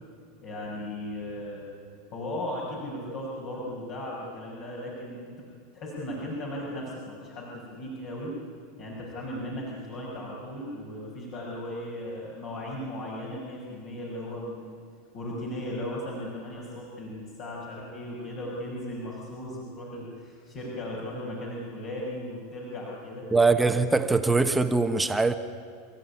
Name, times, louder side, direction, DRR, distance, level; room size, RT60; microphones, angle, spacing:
voice 1, 0.4-1.6 2.1-5.4 5.7-8.3 8.8-14.8 15.1-23.3, left 1 dB, 55° left, 6.1 m, -36 dB
voice 2, 23.3-25.3, right 3 dB, 10° right, 1.1 m, -22 dB
28.0 x 14.0 x 9.9 m
hypercardioid pair, 105°, 0 cm